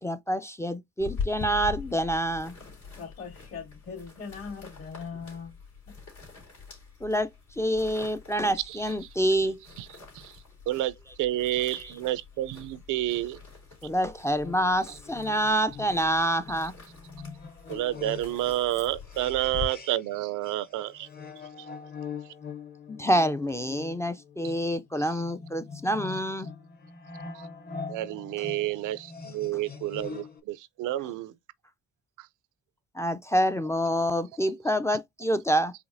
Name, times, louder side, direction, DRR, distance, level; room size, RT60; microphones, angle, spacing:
voice 1, 0.0-2.5 7.0-7.3 7.6-9.6 11.8-11.9 13.8-16.7 22.9-26.5 33.0-35.7, equal, 10° left, 0.3 m, -27 dB
sound 1, 1.0-19.7, left 5 dB, 80° left, 3.0 m, -43 dB
voice 2, 3.0-5.6 5.9-6.0, left 5 dB, 60° left, 2.5 m, -40 dB
voice 3, 10.1-13.4 17.7-21.1 27.3-27.5 27.9-31.3 32.2-32.3, right 14 dB, 85° right, 0.5 m, -30 dB
sound 2, 14.4-20.2 20.4-30.4, left 5 dB, 30° left, 0.8 m, -43 dB
5.0 x 3.4 x 2.6 m
cardioid pair, 90°, 30 cm